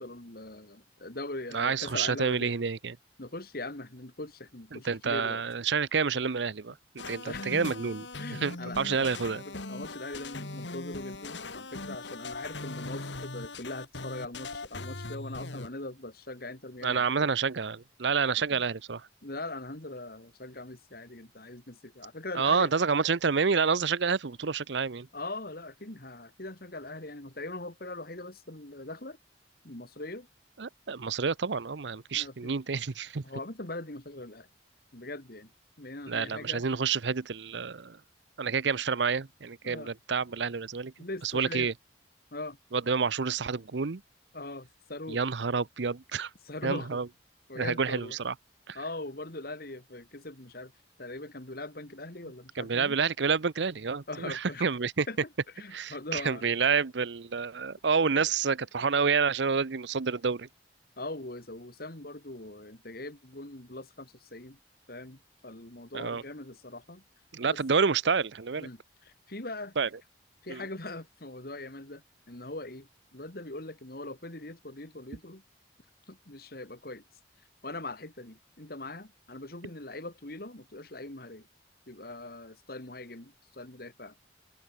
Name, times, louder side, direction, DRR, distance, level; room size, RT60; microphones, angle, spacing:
voice 1, 0.0-2.5 3.2-5.4 7.2-7.7 8.2-17.3 19.2-22.7 25.1-29.2 29.6-30.3 32.1-32.5 33.2-34.5 34.9-35.5 35.8-36.6 39.6-39.9 41.0-41.7 42.3-42.6 44.3-45.2 46.4-47.0 47.5-48.2 48.7-50.7 51.0-53.0 54.1-54.7 55.1-55.2 55.6-56.5 58.1-58.3 61.0-64.6 64.9-67.0 67.5-67.6 68.6-69.8 70.4-75.4 76.1-77.0 77.6-81.5 81.9-84.2, left 2 dB, 55° left, 2.5 m, -41 dB
voice 2, 1.5-3.0 4.7-8.0 8.4-9.4 16.8-19.1 22.3-25.1 30.6-33.2 36.1-38.0 38.4-40.9 41.2-41.7 42.7-44.0 45.1-46.3 46.6-47.1 47.6-48.3 48.7-48.8 52.6-55.1 55.7-60.5 65.9-66.2 67.3-68.7 69.8-69.9 70.5-70.6, right 5 dB, 75° right, 0.7 m, -28 dB
sound 1, 7.0-15.7, left 3 dB, 80° left, 2.2 m, -40 dB
head